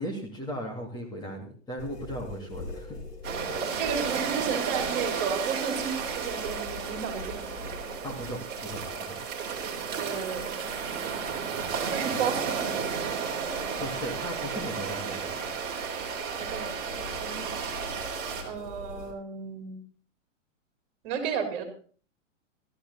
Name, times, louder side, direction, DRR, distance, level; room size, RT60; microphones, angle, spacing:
voice 1, 0.0-3.0 8.0-9.2 13.8-15.5, equal, 10° left, 0 dB, 2.6 m, -37 dB
sound 1, 1.8-19.1, left 3 dB, 35° left, 6.2 m, -44 dB
sound 2, 3.2-18.4, right 6 dB, 25° right, 3.8 m, -33 dB
voice 2, 3.8-7.5 10.0-10.7 11.9-12.7 16.4-17.6 18.4-19.8 21.0-21.6, right 7 dB, 40° right, 6 dB, 4.1 m, -33 dB
15.0 x 13.5 x 4.2 m, 0.42 s
hypercardioid pair, 150°, 39 cm